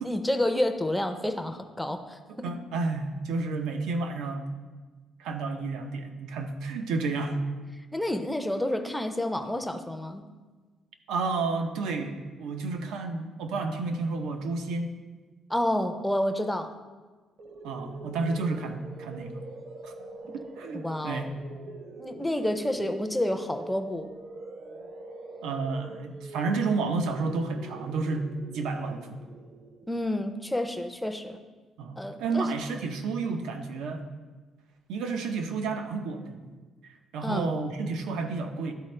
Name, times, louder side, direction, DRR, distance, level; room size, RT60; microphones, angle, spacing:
voice 1, 0.0-2.5 7.9-10.2 15.5-16.7 20.7-21.3 22.0-24.1 29.9-31.4 32.0-32.5 37.2-37.5, left 1 dB, 5° left, 6 dB, 0.4 m, -29 dB
voice 2, 2.4-4.5 5.2-7.4 11.1-14.9 17.6-19.4 19.8-19.9 20.6-21.3 25.4-28.3 28.5-29.2 31.8-34.0 34.9-36.4 37.1-38.7, right 3 dB, 90° right, 6 dB, 0.7 m, -31 dB
sound 1, 17.4-30.2, right 2 dB, 50° right, 0.7 m, -44 dB
12.0 x 4.2 x 3.2 m, 1.3 s
cardioid pair, 165°, 0 cm